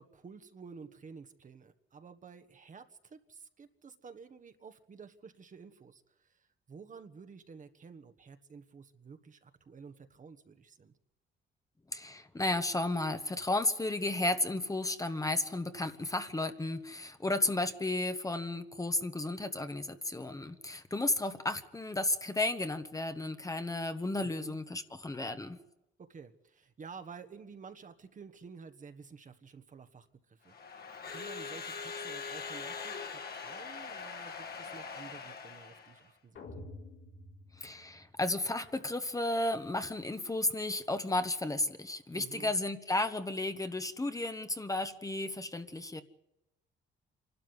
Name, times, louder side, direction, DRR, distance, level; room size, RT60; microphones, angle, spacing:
voice 1, 0.0-10.9 24.2-24.6 26.0-36.7 42.1-42.5, right 5 dB, 40° right, 9 dB, 1.4 m, -51 dB
voice 2, 11.9-25.6 37.6-46.0, left 2 dB, 15° left, 9 dB, 1.2 m, -33 dB
Crowd / Alarm, 30.5-36.0, left 5 dB, 50° left, 2.2 m, -42 dB
sound 1, 36.3-38.5, left 2 dB, 75° left, 4.7 m, -49 dB
26.0 x 12.5 x 9.8 m, 0.90 s
cardioid pair, 90°, 20 cm